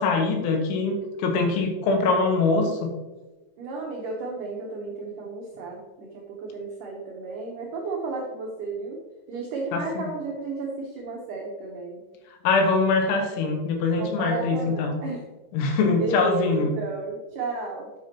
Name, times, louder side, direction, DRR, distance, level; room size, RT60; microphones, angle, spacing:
voice 1, 0.0-2.9 9.7-10.1 12.5-15.0 15.5-16.7, left 3 dB, 80° left, 4 dB, 3.7 m, -23 dB
voice 2, 3.6-9.0 9.3-12.0 14.0-15.2 16.0-17.9, right 3 dB, 80° right, -1 dB, 1.8 m, -33 dB
9.5 x 8.1 x 3.0 m, 1.2 s
omnidirectional pair, 5.5 m